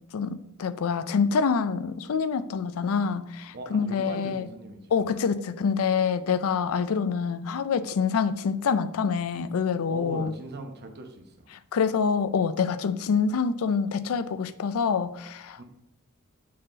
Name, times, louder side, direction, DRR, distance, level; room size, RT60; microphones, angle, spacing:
voice 1, 0.1-4.5 4.9-10.3 11.7-15.6, left 6 dB, 70° left, 0.4 m, -26 dB
voice 2, 3.5-5.1 9.9-11.5 15.6-15.7, right 2 dB, 50° right, 0.9 m, -40 dB
6.6 x 3.9 x 3.9 m
head